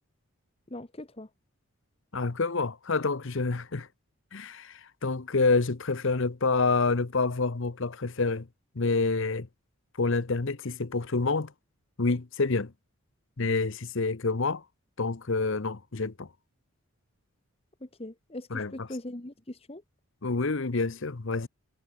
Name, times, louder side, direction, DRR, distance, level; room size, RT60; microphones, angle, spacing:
voice 1, 0.7-1.3 17.8-19.8, left 1 dB, 25° left, 1.1 m, -41 dB
voice 2, 2.1-3.9 4.3-8.5 8.7-9.5 10.0-11.5 12.0-12.7 13.4-14.6 15.0-16.3 18.5-18.7 20.2-21.5, left 3 dB, 55° left, 0.9 m, -27 dB
head